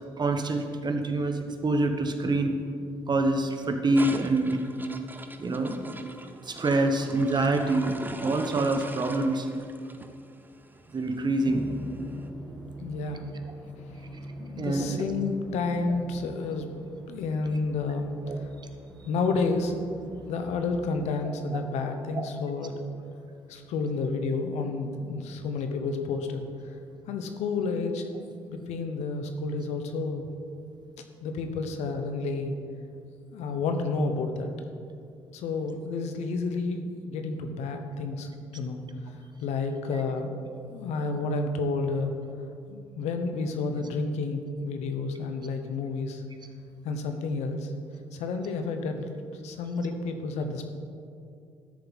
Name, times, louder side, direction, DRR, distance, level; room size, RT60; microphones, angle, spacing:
voice 1, 0.2-2.6 3.1-4.6 5.4-5.8 6.4-9.5 10.9-11.7 14.6-15.0 18.3-18.4 22.2-22.3 40.4-40.6, right 2 dB, 40° right, 5 dB, 1.1 m, -26 dB
sound 1, 3.9-12.2, right 2 dB, 15° right, 0.7 m, -41 dB
sound 2, 11.4-20.9, equal, 5° left, 1.3 m, -43 dB
voice 2, 12.8-13.3 13.9-14.0 14.4-16.7 17.1-18.5 19.0-19.8 20.3-22.7 23.5-26.8 27.1-28.1 28.5-30.3 31.2-32.6 33.3-34.5 35.3-39.1 39.4-40.4 40.7-42.1 42.7-46.2 46.8-47.7 48.1-49.1 49.4-50.6, left 3 dB, 80° left, 6 dB, 0.9 m, -30 dB
13.0 x 6.8 x 4.1 m, 2.4 s
supercardioid pair, 65°, 11 cm